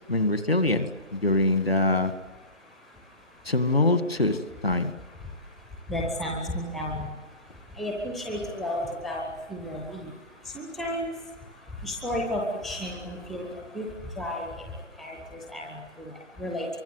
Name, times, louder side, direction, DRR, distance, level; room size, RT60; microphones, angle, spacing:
voice 1, 0.1-2.1 3.5-4.4 4.6-4.9, left 2 dB, 50° left, 10 dB, 2.1 m, -23 dB
voice 2, 5.9-7.1 7.8-10.1 10.5-11.1 11.8-13.5 13.7-13.9 14.2-14.7 15.0-16.7, left 1 dB, ahead, -1 dB, 0.7 m, -32 dB
27.5 x 24.0 x 8.2 m, 1.3 s
figure-of-eight pair, 180°, 37 cm